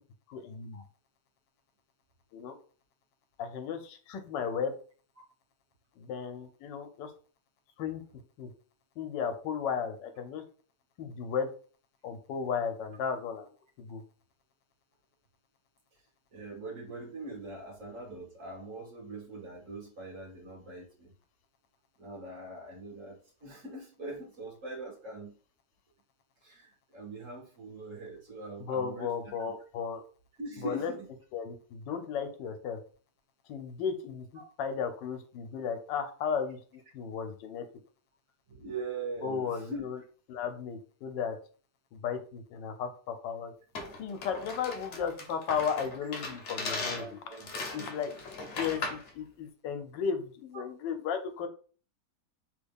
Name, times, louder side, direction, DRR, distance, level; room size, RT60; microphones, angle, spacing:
voice 1, 0.3-0.8 2.3-2.6 3.4-4.7 6.0-7.1 7.8-8.0 8.4-8.5 9.0-10.4 11.0-11.5 12.0-13.5 13.8-14.0 28.6-30.0 30.6-30.9 31.3-32.8 33.5-37.7 39.2-40.0 40.3-41.4 41.9-43.5 44.0-47.1 47.7-48.1 48.5-51.5, left 6 dB, 85° left, 7 dB, 1.3 m, -35 dB
voice 2, 16.3-21.1 22.0-25.3 26.4-29.3 30.4-31.1 34.4-34.5 38.5-39.9 46.7-48.3 50.5-50.6, right 2 dB, 50° right, -1 dB, 1.3 m, -42 dB
sound 1, 43.7-49.1, left 3 dB, 55° left, 0.8 m, -38 dB
3.3 x 2.2 x 3.4 m, 0.41 s
omnidirectional pair, 1.9 m